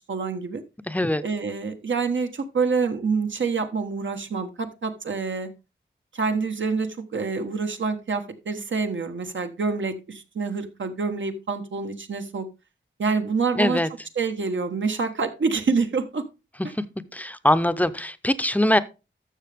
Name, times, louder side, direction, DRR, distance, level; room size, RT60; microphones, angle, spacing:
voice 1, 0.1-0.6 1.2-5.5 6.1-12.5 13.0-13.8 14.2-16.3, right 4 dB, 70° right, 1.3 m, -27 dB
voice 2, 0.8-1.2 13.6-13.9 16.6-16.8 17.1-18.8, left 1 dB, 5° left, 0.7 m, -22 dB
12.5 x 6.9 x 3.5 m
wide cardioid pair, 95°, 20 cm